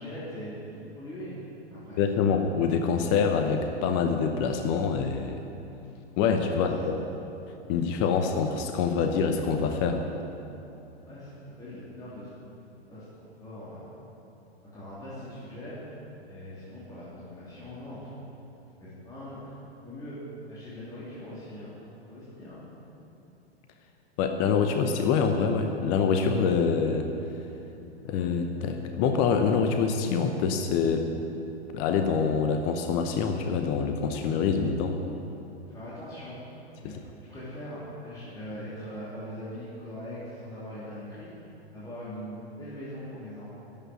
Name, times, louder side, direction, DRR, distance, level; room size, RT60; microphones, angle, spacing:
voice 1, 0.0-2.0 6.5-7.0 11.0-12.3 12.9-13.8 14.6-15.9 16.3-18.3 18.8-19.5 19.8-20.2 20.5-21.7 22.1-22.7 35.6-36.4 36.8-37.0 37.3-41.3 41.7-43.5, equal, 10° left, -10 dB, 3.0 m, -41 dB
voice 2, 2.0-5.4 6.2-7.0 7.7-10.0 24.2-27.1 28.0-31.1 31.7-35.0, left 6 dB, 30° left, 5 dB, 0.9 m, -25 dB
11.5 x 8.1 x 8.7 m, 2.9 s
figure-of-eight pair, 105°, 32 cm